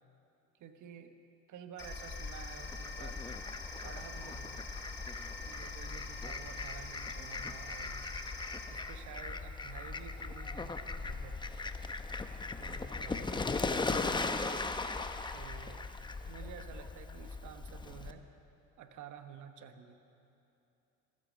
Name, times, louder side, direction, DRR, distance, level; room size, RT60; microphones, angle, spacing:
voice 1, 0.6-1.2 1.5-3.2 3.8-4.6 5.4-8.0 8.7-11.4 12.6-14.3 15.3-15.9 16.2-18.3 18.8-20.0, right 7 dB, 65° right, 8 dB, 1.2 m, -51 dB
sound 1, 1.8-8.6, left 3 dB, 35° left, 2.9 m, -46 dB
Fowl, 1.8-18.1, left 3 dB, 15° left, 0.7 m, -39 dB
14.5 x 14.0 x 7.2 m, 2.8 s
cardioid pair, 100°, 32 cm